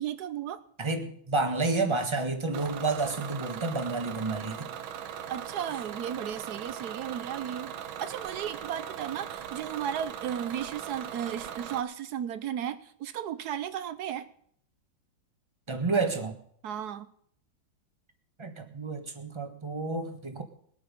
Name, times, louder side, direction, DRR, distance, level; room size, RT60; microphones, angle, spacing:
voice 1, 0.0-0.6 5.3-7.7 8.0-14.3 16.6-17.1, right 9 dB, 65° right, 13 dB, 1.1 m, -34 dB
voice 2, 0.8-4.7 15.7-16.4 18.4-20.4, right 3 dB, 15° right, 6 dB, 1.2 m, -30 dB
Bus / Engine, 2.5-11.8, right 9 dB, 85° right, 1.6 m, -39 dB
20.5 x 8.8 x 5.3 m, 0.66 s
omnidirectional pair, 2.2 m